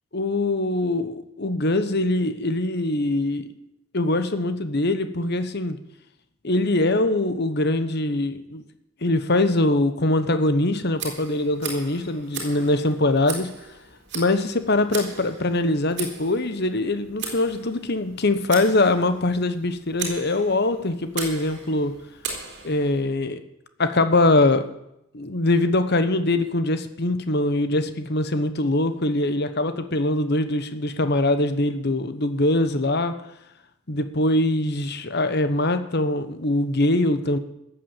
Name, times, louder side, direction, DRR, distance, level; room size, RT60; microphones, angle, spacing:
voice 1, 0.1-3.5 3.9-5.8 6.4-8.6 9.0-13.5 14.1-21.9 22.6-23.4 23.8-24.6 25.1-33.1 33.9-37.4, left 2 dB, 50° left, 10 dB, 1.1 m, -22 dB
Tick, 10.9-23.0, right 5 dB, 50° right, 3.4 m, -37 dB
15.0 x 8.5 x 7.4 m, 0.83 s
head